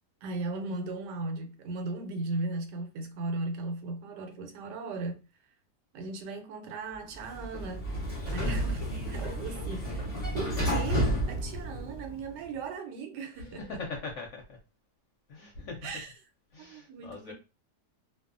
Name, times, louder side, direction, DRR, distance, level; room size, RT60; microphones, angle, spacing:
voice 1, 0.2-5.2 5.9-7.9 8.3-13.8 15.8-16.1 16.6-17.3, right 3 dB, 85° right, 1.2 m, -37 dB
Sliding door, 7.1-12.3, equal, 20° left, 1.0 m, -31 dB
voice 2, 13.4-14.6 15.3-15.9 16.5-17.3, left 3 dB, 60° left, 0.8 m, -41 dB
2.6 x 2.3 x 2.4 m
omnidirectional pair, 1.8 m